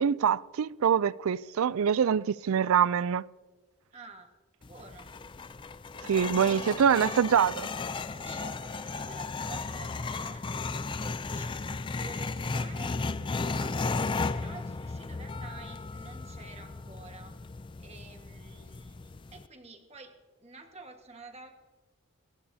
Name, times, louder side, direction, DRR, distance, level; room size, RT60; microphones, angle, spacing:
voice 1, 0.0-3.2 6.1-7.7, right 7 dB, 70° right, 0.4 m, -25 dB
voice 2, 3.9-4.3 4.6-5.1 6.4-7.6 8.1-11.6 11.9-13.8 14.1-17.4 17.8-20.1 20.4-21.6, right 3 dB, 30° right, 1.5 m, -49 dB
sound 1, 4.6-19.5, left 4 dB, 20° left, 0.3 m, -35 dB
28.0 x 15.5 x 2.7 m
head